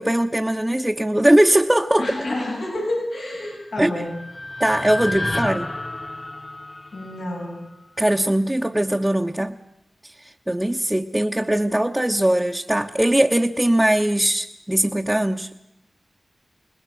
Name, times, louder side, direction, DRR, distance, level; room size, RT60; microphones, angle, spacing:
voice 1, 0.0-2.1 3.8-4.0 4.6-5.7 8.0-9.6 10.5-15.5, right 1 dB, 15° right, 1 dB, 1.2 m, -20 dB
voice 2, 2.0-4.2 6.9-7.6, left 1 dB, 85° left, -3 dB, 7.9 m, -29 dB
sound 1, 3.5-7.8, left 2 dB, 35° left, 0.8 m, -31 dB
26.5 x 20.5 x 6.4 m, 0.87 s
cardioid pair, 40°, 0 cm